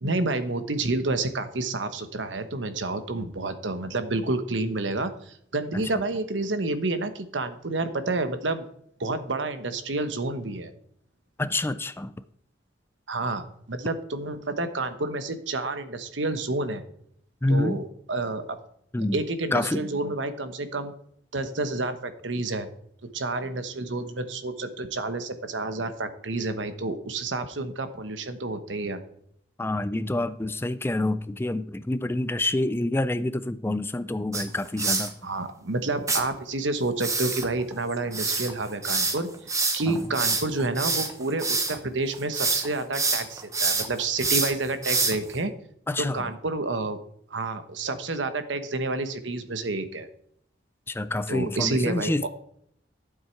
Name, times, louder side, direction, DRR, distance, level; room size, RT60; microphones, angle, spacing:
voice 1, 0.0-8.6 9.0-10.7 13.1-16.8 17.5-18.6 19.1-20.9 21.3-22.7 23.1-29.0 35.2-39.3 39.7-45.5 46.0-47.0 47.3-50.1 51.3-52.3, right 2 dB, 90° right, 1.1 m, -29 dB
voice 2, 11.4-12.1 17.4-17.8 18.9-19.2 19.5-19.8 29.6-35.1 39.9-40.0 45.9-46.2 50.9-52.3, left 2 dB, 15° left, 0.4 m, -27 dB
sound 1, 34.3-35.1 36.1-36.2 37.0-41.8 42.1-42.7 42.9-45.3, right 4 dB, 20° right, 1.1 m, -26 dB
12.0 x 7.5 x 4.5 m
head